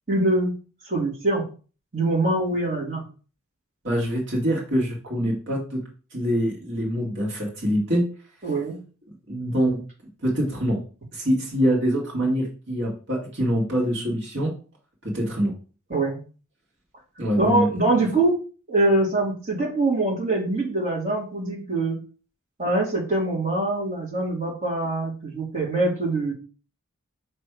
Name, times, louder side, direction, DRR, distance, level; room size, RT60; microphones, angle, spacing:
voice 1, 0.1-0.5 0.8-1.4 1.9-3.0 8.4-8.8 15.9-16.2 17.4-22.0 22.6-26.3, right 2 dB, 35° right, -3 dB, 2.2 m, -23 dB
voice 2, 3.8-5.8 6.1-8.1 9.3-9.8 10.2-10.8 11.1-14.5 15.0-15.5 17.2-17.7, equal, 55° right, -2 dB, 1.9 m, -24 dB
6.1 x 3.2 x 4.7 m, 0.36 s
head